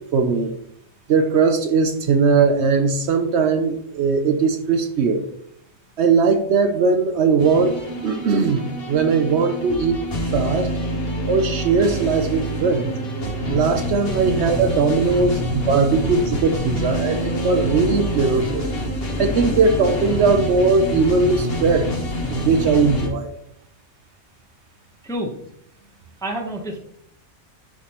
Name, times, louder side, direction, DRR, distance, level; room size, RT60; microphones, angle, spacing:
voice 1, 0.1-0.5 1.1-5.2 6.0-8.6 8.9-10.0 10.3-10.7 11.3-12.9 13.5-18.7 19.2-21.9 22.3-23.3, right 4 dB, 65° right, 6 dB, 0.8 m, -19 dB
sound 1, 7.4-23.1, equal, 50° left, 1.3 m, -26 dB
voice 2, 25.0-25.3 26.2-26.8, right 1 dB, 5° left, 0 dB, 0.7 m, -31 dB
10.5 x 3.6 x 2.9 m, 0.71 s
omnidirectional pair, 1.3 m